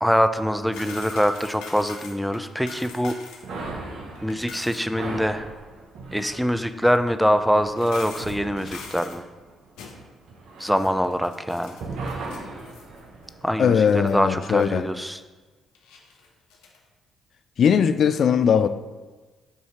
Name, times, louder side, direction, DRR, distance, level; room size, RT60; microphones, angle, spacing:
voice 1, 0.0-3.1 4.2-5.5 6.1-9.2 10.6-11.8 13.4-15.2, equal, ahead, 0.4 m, -24 dB
sound 1, 0.7-3.5 3.8-3.9 4.2-4.8 6.7-6.8 7.7-9.2 9.8-10.1 10.6-13.0 13.3-13.4 13.9-14.1 14.6-14.7 15.7-16.8, left 4 dB, 80° left, 0.7 m, -42 dB
sound 2, 3.4-11.4 11.8-14.1, right 3 dB, 70° right, 0.8 m, -38 dB
voice 2, 13.6-14.9 17.6-18.7, left 7 dB, 60° left, 0.3 m, -19 dB
7.3 x 2.7 x 4.9 m
hypercardioid pair, 50°, 0 cm